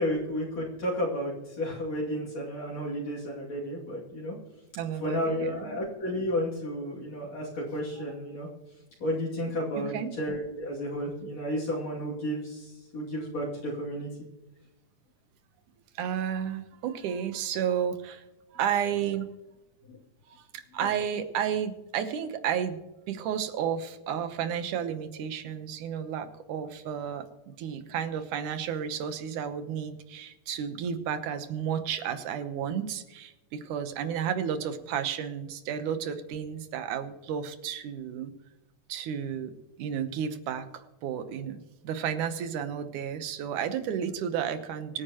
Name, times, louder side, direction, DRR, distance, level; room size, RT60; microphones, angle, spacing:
voice 1, 0.0-4.4 5.0-8.5 9.0-14.1 19.9-20.0, equal, 60° left, -6 dB, 3.7 m, -32 dB
voice 2, 4.8-5.8 9.8-10.1 16.0-18.2 18.5-19.3 20.4-22.8 23.1-38.3 38.9-39.5 39.8-45.0, right 8 dB, 85° right, 9 dB, 2.5 m, -32 dB
24.5 x 9.7 x 3.0 m, 1.0 s
omnidirectional pair, 3.5 m